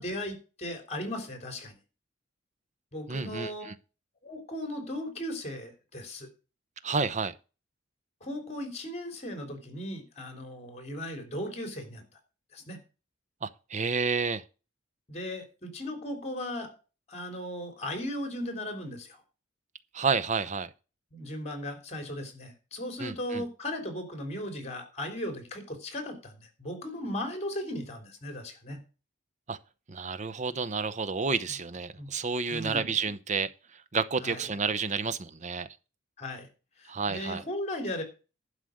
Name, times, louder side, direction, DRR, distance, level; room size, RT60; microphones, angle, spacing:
voice 1, 0.0-1.7 2.9-3.7 4.2-6.3 8.2-12.0 12.5-12.8 15.1-16.7 17.1-19.2 21.1-28.8 32.0-32.1 32.5-32.9 34.2-34.4 36.2-36.5 37.1-38.0, left 1 dB, 35° left, 3.6 m, -37 dB
voice 2, 3.1-3.7 6.8-7.3 13.4-14.4 19.9-20.7 23.0-23.5 29.5-29.6 29.9-33.5 33.9-35.7 36.9-37.4, right 5 dB, 40° right, 0.8 m, -30 dB
11.5 x 5.0 x 7.9 m
head